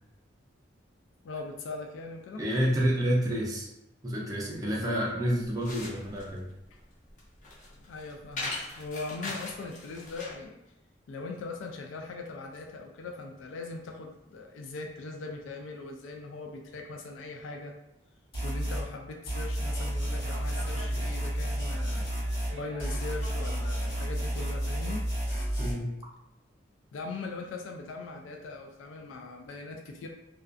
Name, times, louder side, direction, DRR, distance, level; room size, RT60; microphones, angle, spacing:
voice 1, 1.2-2.4 7.7-10.6 11.1-17.7 18.4-22.1 22.5-25.0 26.9-30.1, left 3 dB, 90° left, 2 dB, 0.3 m, -40 dB
voice 2, 2.4-3.7 4.0-6.5 25.6-25.9, equal, 20° right, -4 dB, 0.4 m, -29 dB
sound 1, 5.3-10.4, left 2 dB, 40° left, 0.6 m, -40 dB
sound 2, 18.3-18.9 19.3-22.5 22.8-25.7, equal, 65° left, 1.3 m, -31 dB
sound 3, 19.6-24.5, right 2 dB, 85° right, 0.4 m, -49 dB
2.4 x 2.2 x 2.4 m, 0.92 s
head